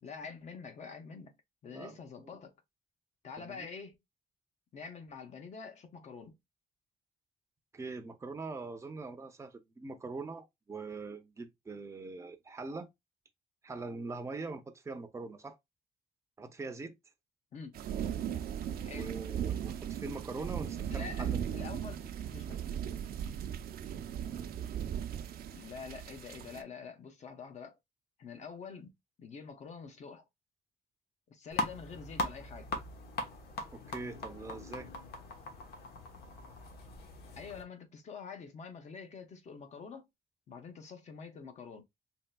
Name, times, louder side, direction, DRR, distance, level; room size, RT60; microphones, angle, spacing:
voice 1, 0.0-1.3 1.6-2.5 3.2-4.0 4.7-6.4 17.5-17.8 18.8-19.1 20.9-22.0 22.3-22.6 25.4-27.8 28.2-30.2 31.3-32.7 37.4-40.1 40.5-41.8, left 5 dB, 45° left, 0.8 m, -46 dB
voice 2, 1.7-2.3 3.4-3.7 7.7-12.9 13.6-15.6 16.4-16.9 18.9-21.4 33.7-34.9, right 3 dB, 20° right, 0.6 m, -42 dB
sound 1, 17.7-26.6, right 9 dB, 70° right, 0.5 m, -37 dB
sound 2, 31.5-37.6, left 2 dB, 80° left, 1.0 m, -40 dB
4.5 x 3.3 x 2.2 m
cardioid pair, 160°, 16 cm